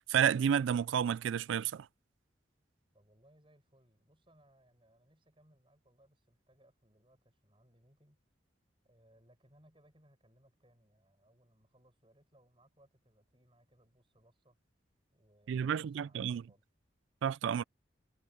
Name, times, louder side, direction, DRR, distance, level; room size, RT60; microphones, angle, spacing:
voice 1, 0.0-1.9 15.5-16.4 17.2-17.6, right 8 dB, 80° right, 0.3 m, -31 dB
voice 2, 2.9-8.2 8.8-14.6 15.1-16.6, right 1 dB, 25° right, 7.5 m, -67 dB
head